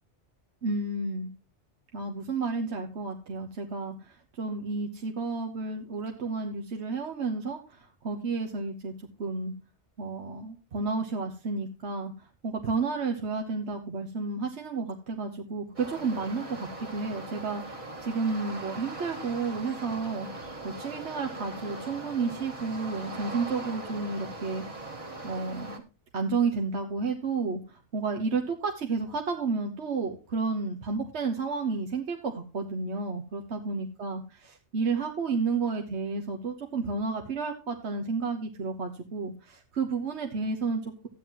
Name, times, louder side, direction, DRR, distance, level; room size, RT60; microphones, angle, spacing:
voice 1, 0.6-1.3 1.9-8.9 9.2-9.5 10.0-24.6 25.2-25.8 26.1-41.1, right 4 dB, 70° right, 3 dB, 1.4 m, -31 dB
sound 1, 15.8-25.8, right 2 dB, 30° right, 1.6 m, -40 dB
13.5 x 9.2 x 3.0 m, 0.32 s
omnidirectional pair, 1.2 m